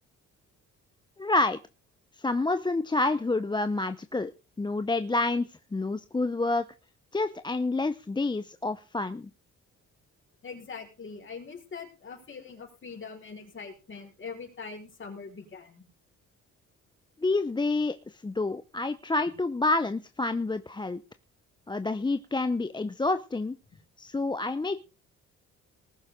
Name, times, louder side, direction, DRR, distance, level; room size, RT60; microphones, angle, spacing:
voice 1, 1.2-1.6 2.2-4.3 4.6-5.5 5.7-6.7 7.1-9.3 17.2-21.0 21.7-23.6 24.0-24.8, left 2 dB, 15° left, 11 dB, 0.7 m, -28 dB
voice 2, 10.4-15.9, left 5 dB, 40° left, 2 dB, 5.6 m, -42 dB
19.5 x 7.1 x 5.1 m, 0.32 s
cardioid pair, 90°, 30 cm